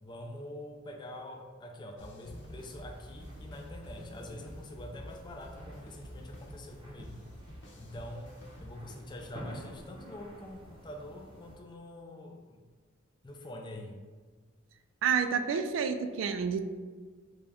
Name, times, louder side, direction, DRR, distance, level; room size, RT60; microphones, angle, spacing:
voice 1, 0.0-7.2 7.8-12.6 13.2-14.0, left 1 dB, 25° left, 2 dB, 0.4 m, -45 dB
sound 1, 1.9-9.3, equal, 65° left, 0.6 m, -49 dB
sound 2, 2.3-11.6, equal, 25° right, 0.7 m, -52 dB
voice 2, 15.0-16.6, right 6 dB, 90° right, 8 dB, 0.3 m, -29 dB
3.9 x 2.3 x 3.4 m, 1.5 s
head